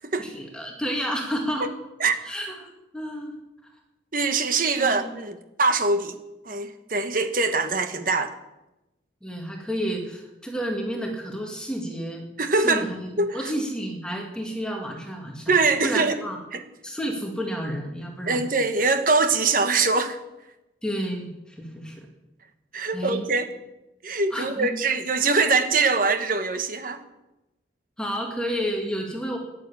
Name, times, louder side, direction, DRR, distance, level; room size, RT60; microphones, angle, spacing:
voice 1, 0.2-1.7 2.2-2.7 2.9-3.4 4.8-5.1 9.2-12.3 12.5-15.5 15.8-16.4 16.8-18.5 20.8-22.1 22.9-23.3 24.3-24.7 28.0-29.4, equal, 5° left, 2.0 m, -31 dB
voice 2, 4.1-6.2 6.4-8.3 12.4-12.9 13.2-13.5 15.5-16.2 16.5-16.6 18.3-20.2 22.7-23.5 24.0-27.0, right 3 dB, 45° right, 1.3 m, -23 dB
12.5 x 10.5 x 8.7 m
head